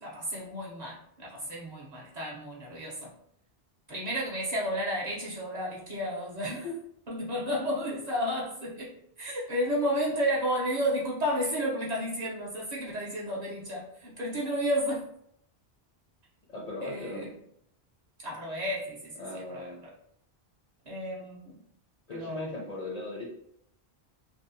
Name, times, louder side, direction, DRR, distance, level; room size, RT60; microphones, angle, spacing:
voice 1, 0.0-3.1 3.9-6.6 7.1-15.1 16.8-17.3 18.2-19.9 20.9-21.6 22.1-22.5, equal, 45° right, -6 dB, 0.7 m, -32 dB
voice 2, 16.5-17.3 19.2-19.8 22.1-23.3, left 2 dB, 50° left, -4 dB, 0.5 m, -38 dB
2.6 x 2.0 x 2.5 m, 0.71 s
omnidirectional pair, 1.1 m